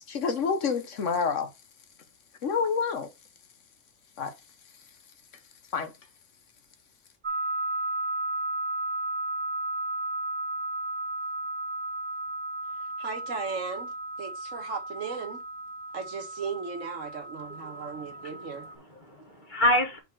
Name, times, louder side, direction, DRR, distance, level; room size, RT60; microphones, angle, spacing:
voice 1, 0.0-1.5 2.4-3.1 4.2-4.3 5.7-5.9, left 5 dB, 70° left, 1.3 m, -28 dB
sound 1, 7.2-18.7, right 2 dB, 20° right, 1.7 m, -34 dB
voice 2, 13.0-13.9 14.2-15.4 15.9-18.7, right 5 dB, 75° right, 1.7 m, -36 dB
voice 3, 17.4-20.0, left 1 dB, 40° left, 1.8 m, -29 dB
5.3 x 4.0 x 5.9 m
omnidirectional pair, 1.3 m